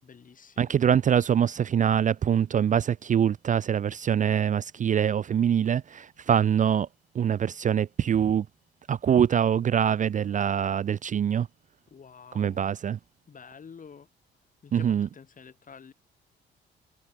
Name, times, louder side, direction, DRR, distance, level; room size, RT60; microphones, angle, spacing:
voice 1, 0.0-0.8 11.9-12.7 13.3-14.1 14.6-15.9, left 6 dB, 40° left, 5.5 m, -49 dB
voice 2, 0.6-6.9 7.2-8.4 8.9-11.5 12.3-13.0 14.7-15.1, right 8 dB, 40° right, 0.4 m, -24 dB
cardioid pair, 90°, 20 cm